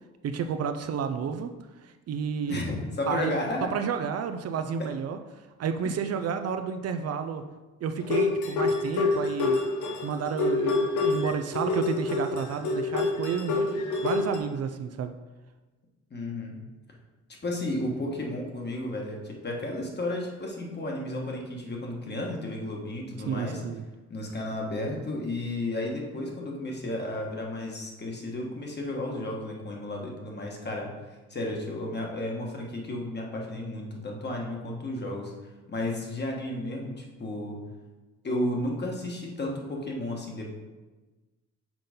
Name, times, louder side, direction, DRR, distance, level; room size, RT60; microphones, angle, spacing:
voice 1, 0.2-1.5 1.8-2.6 3.1-3.3 3.7-5.2 5.6-7.4 7.8-9.6 10.0-15.1 23.3-23.8, right 6 dB, 55° right, 8 dB, 0.5 m, -31 dB
voice 2, 2.4-3.7 4.8-4.9 6.0-6.1 16.1-16.6 17.4-23.6 24.1-30.9 31.3-35.3 35.7-37.6 38.2-40.5, left 1 dB, 35° left, 0 dB, 1.5 m, -33 dB
sound 1, 8.0-14.4, left 3 dB, 80° left, 1.0 m, -27 dB
6.0 x 3.9 x 5.2 m, 1.2 s
cardioid pair, 90°, 30 cm